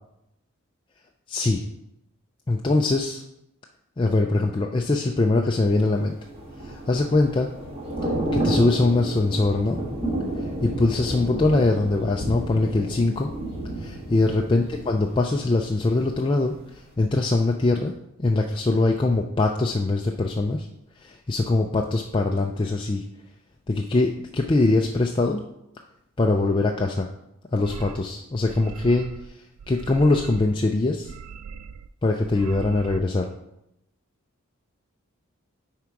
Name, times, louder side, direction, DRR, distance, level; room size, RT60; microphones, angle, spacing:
voice 1, 1.3-1.6 2.5-3.2 4.0-6.2 6.6-7.5 8.0-9.8 10.4-13.3 13.8-17.9 18.2-20.7 21.0-23.0 23.7-25.4 26.2-27.1 27.5-29.1 29.7-31.1 32.0-33.3, left 2 dB, 20° left, 1 dB, 0.3 m, -22 dB
Thunder / Rain, 6.1-16.1 16.4-16.7, right 1 dB, 25° right, 1.4 m, -31 dB
sound 1, 27.6-28.0 28.4-29.3 29.6-30.6 30.9-31.9 32.2-33.0, right 5 dB, 90° right, 0.3 m, -40 dB
9.7 x 3.6 x 4.6 m, 0.83 s
head